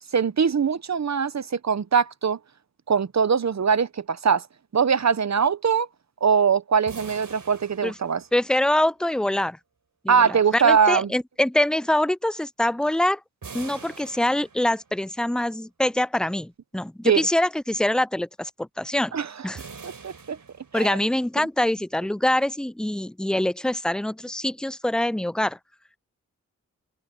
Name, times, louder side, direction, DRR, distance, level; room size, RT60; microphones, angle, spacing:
voice 1, 0.1-2.4 2.9-4.5 4.7-5.9 6.2-8.2 10.1-11.1 17.1-17.3 19.1-19.3 19.8-20.4 20.7-21.0, right 6 dB, 55° right, 0.8 m, -22 dB
sound 1, 6.9-8.7 13.4-15.1 19.5-21.2, right 5 dB, 75° right, 4.2 m, -43 dB
voice 2, 8.3-9.6 10.0-13.2 13.5-19.2 19.4-19.6 20.7-25.6, left 1 dB, ahead, 0.4 m, -24 dB
cardioid pair, 55°, 33 cm